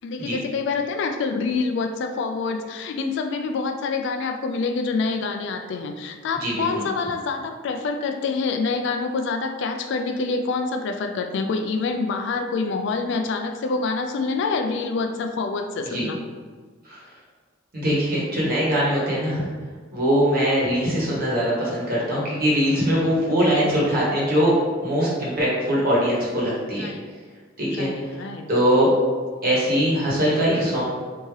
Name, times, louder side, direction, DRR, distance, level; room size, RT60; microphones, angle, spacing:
voice 1, 0.0-16.2 23.4-23.7 26.8-27.0 27.7-28.5, left 4 dB, 60° left, 6 dB, 0.3 m, -26 dB
voice 2, 6.4-6.8 15.8-16.1 16.8-17.0 17.7-19.5 19.9-24.5 24.8-26.9 27.6-27.9 28.5-28.9 29.4-30.8, equal, 45° right, -6 dB, 1.2 m, -22 dB
3.5 x 2.7 x 3.1 m, 1.5 s
head